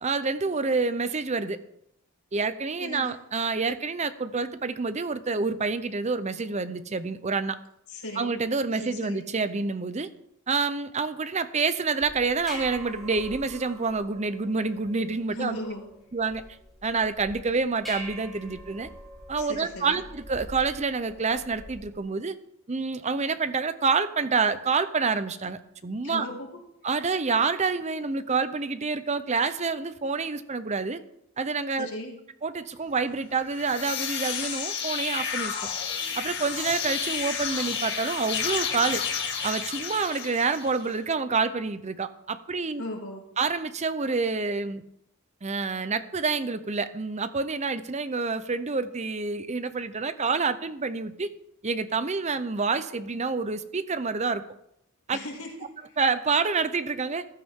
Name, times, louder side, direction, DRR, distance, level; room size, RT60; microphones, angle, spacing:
voice 1, 0.0-1.6 2.3-7.6 8.2-10.1 10.5-15.6 16.1-16.4 16.8-18.9 19.3-22.4 22.7-26.3 26.8-31.0 31.4-31.9 32.4-35.6 36.2-39.0 39.4-42.8 43.4-44.8 45.4-51.3 51.6-54.4 55.1-55.2 56.0-57.3, right 4 dB, 30° right, 12 dB, 0.7 m, -28 dB
voice 2, 2.8-3.2 7.9-8.4 8.8-9.2 15.3-15.8 19.4-20.0 26.0-26.6 31.8-32.1 42.8-43.2 55.1-56.0, left 1 dB, 85° left, -1 dB, 4.6 m, -37 dB
sound 1, 12.0-22.0, equal, ahead, 4.3 m, -44 dB
sound 2, 33.4-40.9, left 7 dB, 50° left, 2.2 m, -31 dB
14.5 x 12.5 x 3.7 m, 0.76 s
head